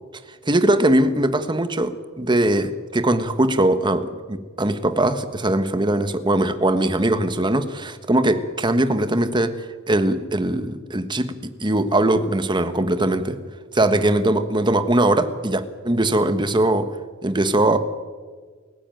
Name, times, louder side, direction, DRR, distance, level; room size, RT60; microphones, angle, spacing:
voice 1, 0.4-13.4 13.7-17.0 17.2-17.8, right 1 dB, 20° right, 1.3 m, -21 dB
28.0 x 16.0 x 9.2 m
head